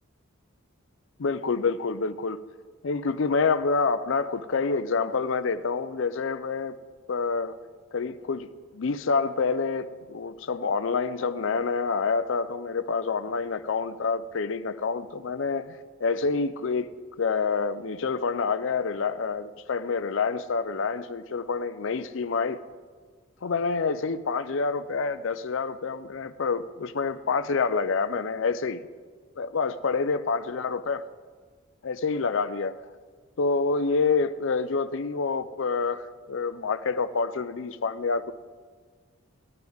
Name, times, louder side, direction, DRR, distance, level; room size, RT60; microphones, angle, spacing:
voice 1, 1.2-2.4 2.8-6.8 7.1-7.5 7.9-8.5 8.7-16.9 17.2-22.6 23.4-28.8 29.4-31.0 31.8-32.7 33.4-38.3, left 4 dB, 65° left, 0.5 m, -27 dB
16.0 x 10.5 x 3.5 m
head